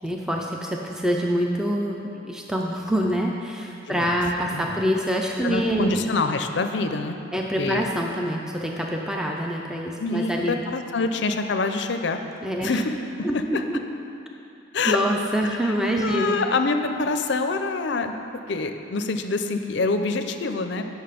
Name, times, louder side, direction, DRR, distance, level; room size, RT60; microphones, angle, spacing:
voice 1, 0.0-6.0 7.3-10.6 12.4-12.7 13.2-13.8 14.8-16.4, equal, 5° right, 0 dB, 0.4 m, -25 dB
voice 2, 3.9-4.2 4.5-4.9 5.4-7.2 7.6-7.8 10.0-12.2 12.6-12.9 13.2-13.6 14.7-15.0 15.6-15.7 16.0-18.2 18.5-20.8, left 3 dB, 60° left, 7 dB, 0.5 m, -26 dB
8.7 x 6.4 x 5.1 m, 2.7 s
head